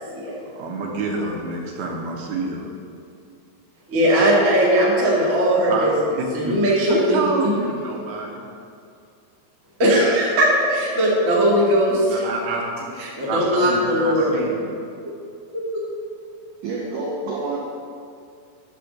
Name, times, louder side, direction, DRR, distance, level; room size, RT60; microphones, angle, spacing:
voice 1, 0.4-2.7 5.7-5.9 6.1-8.4 12.1-12.6 13.3-14.7, right 3 dB, 75° right, 0 dB, 2.7 m, -28 dB
voice 2, 3.9-5.9 6.3-7.5 9.8-12.1 13.0-14.5 15.7-15.8, equal, 45° right, -7 dB, 1.0 m, -19 dB
voice 3, 16.6-17.6, right 3 dB, 90° right, -3 dB, 1.7 m, -28 dB
9.3 x 4.4 x 6.5 m, 2.4 s
omnidirectional pair, 4.8 m